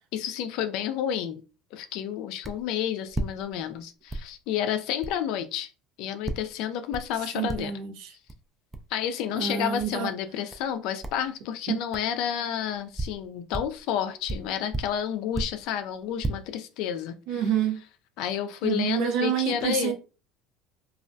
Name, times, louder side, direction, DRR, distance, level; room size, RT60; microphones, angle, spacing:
voice 1, 0.1-1.4 1.7-5.7 6.0-7.7 8.9-17.4 18.2-19.9, left 9 dB, 65° left, 0.4 m, -30 dB
sound 1, 2.4-2.7 3.1-3.8 4.1-4.3 5.0-5.2 6.2-6.5 6.9-7.2 7.5-7.9 8.3-8.4 8.7-8.9 9.8-10.0 10.5-10.7 11.0-11.3 11.9-12.1 12.7-13.8 14.2-15.7 16.0-16.3, right 2 dB, 15° right, 0.4 m, -34 dB
voice 2, 7.3-8.1 9.3-10.1 11.7-11.8 17.3-17.8 18.6-19.9, right 9 dB, 70° right, 0.6 m, -27 dB
2.3 x 2.1 x 2.6 m
supercardioid pair, 90°, 0 cm